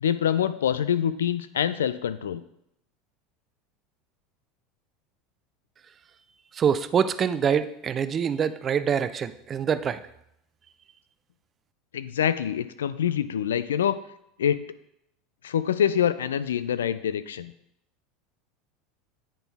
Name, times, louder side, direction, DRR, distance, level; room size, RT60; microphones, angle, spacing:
voice 1, 0.0-2.4 11.9-14.0 14.4-14.6 15.4-17.5, left 9 dB, 85° left, 14 dB, 0.3 m, -25 dB
voice 2, 6.5-10.0, right 7 dB, 35° right, 13 dB, 0.4 m, -25 dB
8.9 x 4.1 x 3.4 m, 0.79 s
hypercardioid pair, 90°, 0 cm